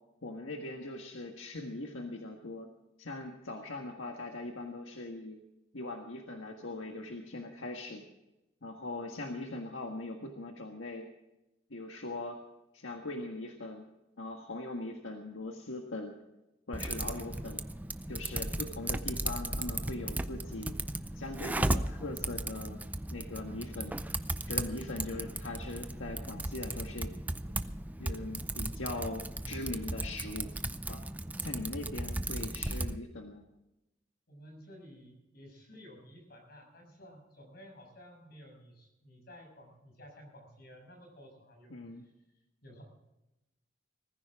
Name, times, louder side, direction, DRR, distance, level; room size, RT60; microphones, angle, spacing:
voice 1, 0.2-2.7 3.0-5.4 5.7-8.0 8.6-11.1 11.7-12.4 12.7-13.8 14.2-16.1 16.7-17.6 18.1-20.8 21.1-22.8 23.1-23.9 24.5-27.1 28.0-30.5 30.9-31.0 31.4-33.4 41.7-42.1, left 2 dB, 80° left, 2 dB, 1.7 m, -41 dB
Typing, 16.7-33.0, right 1 dB, 10° right, 0.5 m, -36 dB
voice 2, 34.3-41.8 42.6-42.8, equal, 50° left, 3 dB, 6.5 m, -53 dB
20.0 x 14.5 x 3.7 m, 0.94 s
head